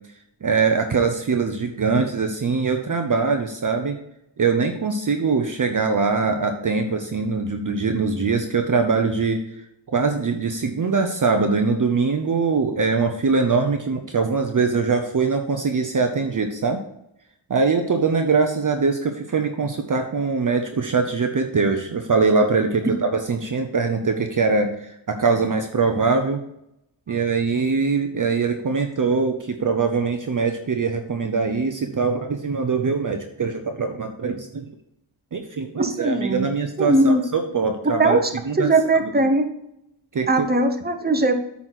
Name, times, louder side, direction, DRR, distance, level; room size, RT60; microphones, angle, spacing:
voice 1, 0.4-4.0 4.4-9.4 9.9-16.8 17.5-26.4 27.1-34.6 35.3-38.2 38.5-38.7 39.0-39.1 40.1-40.5, right 4 dB, 40° right, 5 dB, 0.9 m, -22 dB
voice 2, 35.8-36.5 36.8-37.2 38.0-39.5 40.3-41.3, right 2 dB, 20° right, 6 dB, 1.1 m, -20 dB
9.1 x 4.3 x 5.9 m, 0.82 s
cardioid pair, 75°, 48 cm